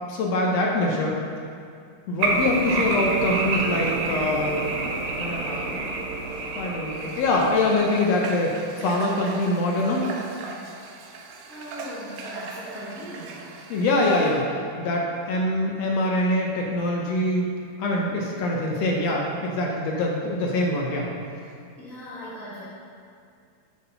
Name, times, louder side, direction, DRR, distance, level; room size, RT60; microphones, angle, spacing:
voice 1, 0.1-1.2 2.1-4.7 5.2-5.8 6.5-10.0 13.7-17.5 17.8-21.1, left 2 dB, 70° left, -1 dB, 1.6 m, -24 dB
sound 1, 2.2-8.2, right 3 dB, 70° right, 1.8 m, -28 dB
Water / Water tap faucet, 6.9-14.4, right 4 dB, 85° right, 1.4 m, -40 dB
voice 2, 11.5-13.4 21.8-22.6, equal, 40° left, -10 dB, 1.2 m, -39 dB
7.2 x 5.8 x 5.8 m, 2.3 s
omnidirectional pair, 3.7 m